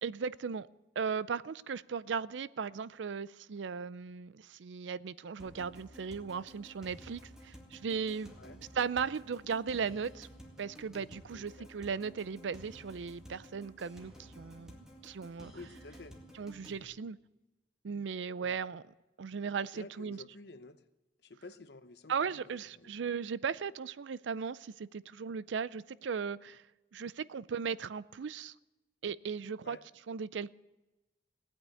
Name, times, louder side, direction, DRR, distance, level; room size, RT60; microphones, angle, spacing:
voice 1, 0.0-0.7 1.0-8.3 8.7-10.3 10.6-14.8 15.0-15.5 16.4-17.2 17.8-18.8 19.2-20.2 22.1-26.6 26.9-28.5 29.0-29.8 30.1-30.5, right 6 dB, 85° right, 19 dB, 0.4 m, -37 dB
sound 1, 5.4-16.8, equal, 5° right, 2.1 m, -53 dB
voice 2, 11.3-11.7 15.5-16.2 18.4-18.6 19.7-20.8 21.2-22.9 29.6-29.8, left 3 dB, 60° left, 11 dB, 0.9 m, -51 dB
17.5 x 9.0 x 9.2 m, 1.1 s
head